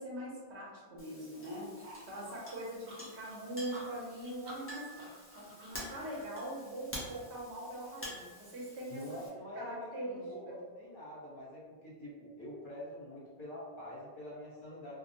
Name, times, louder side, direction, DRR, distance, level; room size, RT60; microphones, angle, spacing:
voice 1, 0.0-1.7 2.1-9.2 9.6-10.6, right 1 dB, 80° right, -4 dB, 1.0 m, -42 dB
Chink clink, 1.0-9.3, equal, 20° left, 0.4 m, -49 dB
sound 1, 1.8-6.3, equal, 55° right, 0.6 m, -52 dB
voice 2, 8.9-15.0, left 1 dB, 50° left, -8 dB, 1.0 m, -46 dB
2.5 x 2.1 x 2.8 m, 1.5 s
omnidirectional pair, 1.1 m